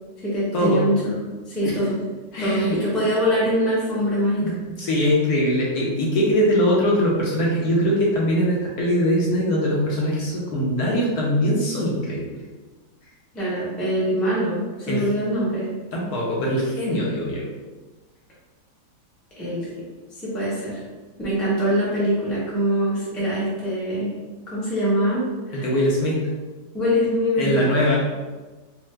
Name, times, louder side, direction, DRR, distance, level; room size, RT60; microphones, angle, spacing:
voice 1, 0.2-2.0 2.4-4.4 13.3-15.7 19.4-19.7 20.2-20.8 21.2-24.1 24.5-25.7 26.7-27.7, equal, ahead, -8 dB, 0.4 m, -23 dB
voice 2, 2.3-2.8 4.4-12.4 14.9-15.1 15.9-17.4 25.5-26.2 27.4-28.0, equal, 70° left, -4 dB, 1.0 m, -22 dB
3.3 x 2.0 x 3.2 m, 1.3 s
omnidirectional pair, 1.9 m